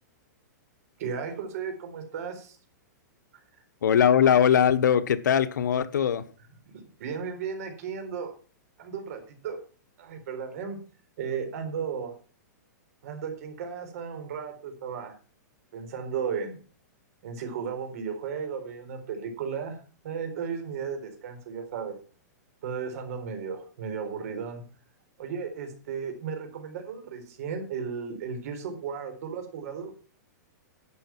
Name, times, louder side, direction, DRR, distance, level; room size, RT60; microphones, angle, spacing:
voice 1, 1.0-2.6 6.7-8.3 8.8-9.6 10.0-10.8 11.2-12.1 13.0-15.1 15.7-16.6 17.2-19.8 20.0-21.9 22.6-24.6 25.2-29.9, right 6 dB, 55° right, 4.0 m, -35 dB
voice 2, 3.8-6.2, left 8 dB, 90° left, 1.0 m, -21 dB
11.5 x 7.9 x 6.0 m
hypercardioid pair, 160°, 10 cm